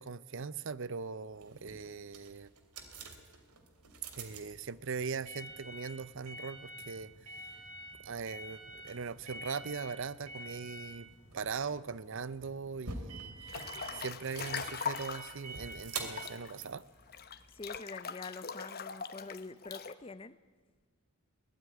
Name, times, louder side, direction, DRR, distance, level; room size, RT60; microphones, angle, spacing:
voice 1, 0.0-2.5 4.1-7.3 8.0-13.6 13.9-16.8, right 5 dB, 55° right, 0.6 m, -40 dB
sound 1, 1.3-17.7, right 3 dB, 85° right, 3.0 m, -47 dB
Breathing / Bathtub (filling or washing) / Splash splatter, 13.5-15.4 15.9-19.9, left 6 dB, 45° left, 1.0 m, -41 dB
voice 2, 17.5-20.4, left 3 dB, 25° left, 0.6 m, -45 dB
22.5 x 18.0 x 9.5 m
head